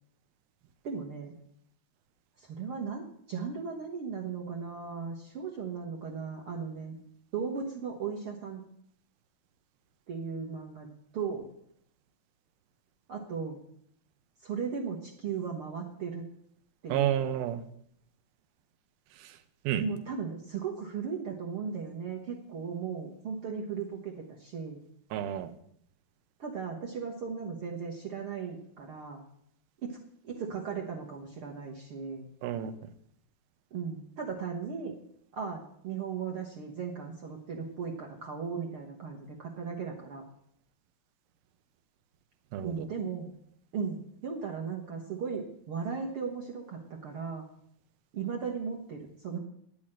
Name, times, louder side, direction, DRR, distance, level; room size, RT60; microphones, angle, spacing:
voice 1, 0.8-1.3 2.4-7.0 7.3-8.6 10.1-10.9 11.1-11.5 13.1-13.6 14.4-16.2 16.8-17.2 19.8-24.8 26.4-29.2 29.8-30.0 30.2-32.3 33.7-35.0 35.3-40.2 42.6-43.3 43.7-47.5 48.1-49.4, right 6 dB, 65° right, 0 dB, 1.4 m, -37 dB
voice 2, 16.9-17.6 19.2-19.4 19.6-19.8 25.1-25.5 32.4-32.7 42.5-42.9, right 11 dB, 85° right, 10 dB, 2.7 m, -30 dB
10.0 x 6.3 x 8.8 m, 0.70 s
omnidirectional pair, 4.2 m